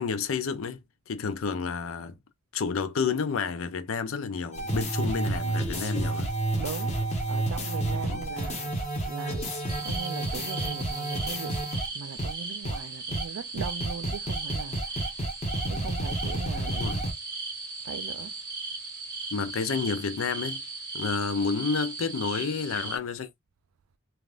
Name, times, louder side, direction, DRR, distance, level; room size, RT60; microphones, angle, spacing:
voice 1, 0.0-2.2 2.5-6.3 7.9-8.3 16.7-17.0 19.3-20.6 20.9-23.3, left 5 dB, 70° left, 0.5 m, -30 dB
sound 1, 4.5-11.9 12.2-12.3 12.6-12.8 13.1-13.2 13.6-17.1, right 1 dB, 30° left, 0.9 m, -30 dB
voice 2, 6.6-7.0 7.3-8.7 9.0-11.6 11.9-14.8 15.7-16.9 17.8-18.3, right 7 dB, 75° right, 0.3 m, -39 dB
sound 2, 9.7-23.0, right 3 dB, 20° right, 0.9 m, -37 dB
3.4 x 2.3 x 2.4 m
head